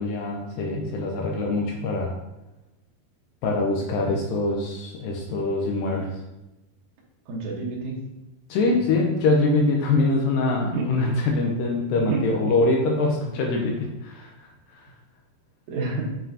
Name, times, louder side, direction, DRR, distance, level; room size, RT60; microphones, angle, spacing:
voice 1, 0.0-2.1 3.4-6.1 8.5-14.3 14.7-14.9, left 2 dB, 75° left, 0 dB, 2.1 m, -24 dB
voice 2, 7.3-8.0 8.7-8.8 10.7-10.9 12.1-12.6 15.7-16.1, right 3 dB, 65° right, -2 dB, 2.1 m, -29 dB
7.3 x 5.8 x 2.8 m, 0.97 s
omnidirectional pair, 4.8 m